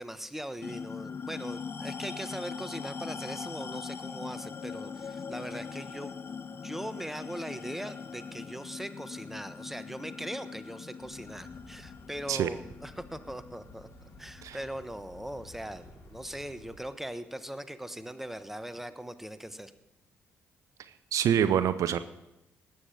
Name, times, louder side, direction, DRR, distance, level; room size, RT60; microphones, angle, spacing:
voice 1, 0.0-6.1 6.6-13.9 14.2-19.7, right 1 dB, 5° right, 11 dB, 1.2 m, -40 dB
sound 1, 0.6-15.4, left 6 dB, 40° left, 0.6 m, -42 dB
sound 2, 11.0-16.8, left 2 dB, 55° left, 4.2 m, -53 dB
voice 2, 21.1-22.0, right 9 dB, 60° right, 13 dB, 0.6 m, -25 dB
19.0 x 7.7 x 6.4 m, 0.94 s
hypercardioid pair, 45°, 6 cm